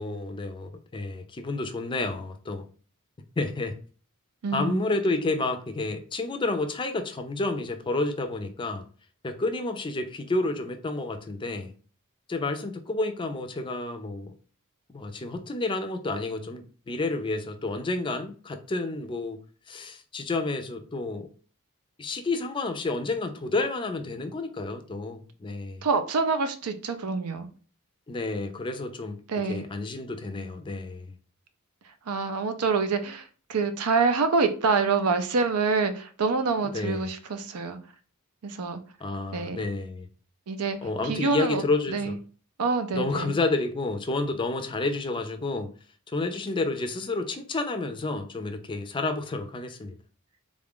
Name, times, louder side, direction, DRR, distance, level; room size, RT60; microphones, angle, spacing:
voice 1, 0.0-2.7 3.4-3.7 4.5-8.9 9.2-11.7 12.3-14.3 14.9-19.4 19.7-21.3 22.0-25.8 28.1-29.2 29.5-31.1 36.7-37.1 39.0-40.1 40.8-42.2 42.9-45.7 46.1-49.9, left 2 dB, 20° left, 0.4 m, -30 dB
voice 2, 4.4-4.8 25.8-27.5 29.3-29.6 32.1-37.8 38.4-38.8 39.3-39.6 40.5-40.8 41.0-41.6 41.9-42.1 42.6-43.3, right 4 dB, 85° right, 0.5 m, -26 dB
3.7 x 2.4 x 3.6 m
head